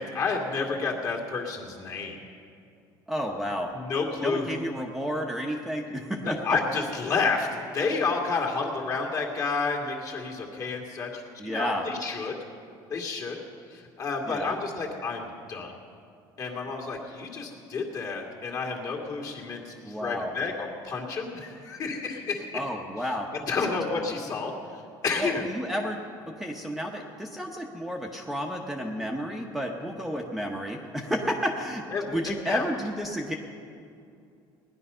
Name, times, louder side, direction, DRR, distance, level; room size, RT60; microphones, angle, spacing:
voice 1, 0.0-2.2 3.7-4.6 6.2-12.4 12.9-13.4 13.7-15.8 16.4-22.6 23.5-24.5 25.0-25.4 31.9-32.2 32.5-32.7, left 4 dB, 40° left, 0 dB, 2.2 m, -30 dB
voice 2, 3.1-3.7 4.2-6.6 11.4-11.9 14.3-14.6 19.8-20.3 22.5-23.3 23.6-23.7 25.2-26.0 26.4-33.3, equal, ahead, -1 dB, 0.8 m, -31 dB
18.5 x 10.5 x 5.6 m, 2.5 s
cardioid pair, 150°, 9 cm